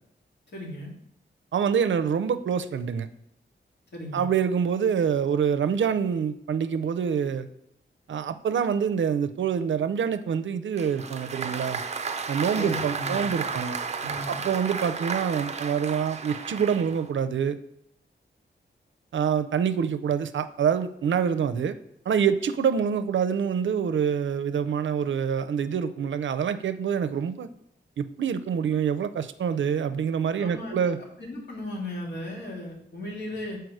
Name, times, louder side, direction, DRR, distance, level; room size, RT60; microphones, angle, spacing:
voice 1, 0.5-0.9 3.9-4.3 12.5-13.5 14.0-14.4 30.4-33.6, left 1 dB, 65° left, -2 dB, 2.2 m, -36 dB
voice 2, 1.5-3.1 4.1-7.5 8.1-11.8 12.3-13.8 14.3-17.6 19.1-21.8 22.1-27.5 28.0-31.0, right 7 dB, 90° right, 11 dB, 0.5 m, -26 dB
Applause, 10.8-17.1, right 5 dB, 35° right, 0.5 m, -33 dB
7.8 x 4.6 x 4.8 m, 0.76 s
wide cardioid pair, 175°, 19 cm